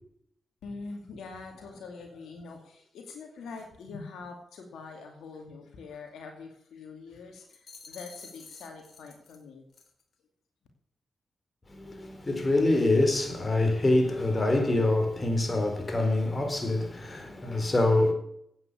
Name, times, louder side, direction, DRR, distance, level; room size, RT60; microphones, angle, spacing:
voice 1, 0.6-9.6, left 4 dB, 85° left, 2.4 m, -44 dB
sound 1, 7.5-9.4 9.7-10.0, left 5 dB, 65° left, 3.3 m, -50 dB
voice 2, 11.7-18.1, left 2 dB, 35° left, 4.2 m, -25 dB
10.5 x 9.1 x 8.5 m
cardioid pair, 55°, 0 cm